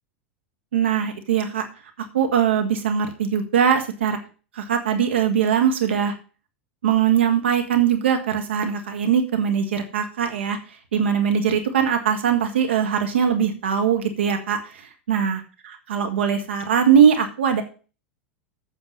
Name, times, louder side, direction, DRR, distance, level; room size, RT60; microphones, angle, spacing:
voice 1, 0.7-1.6 2.1-4.2 4.5-6.1 6.8-10.6 10.9-15.4 15.9-17.6, right 8 dB, 75° right, 6 dB, 1.6 m, -21 dB
8.6 x 6.9 x 5.5 m, 0.35 s
hypercardioid pair, 90°, 6 cm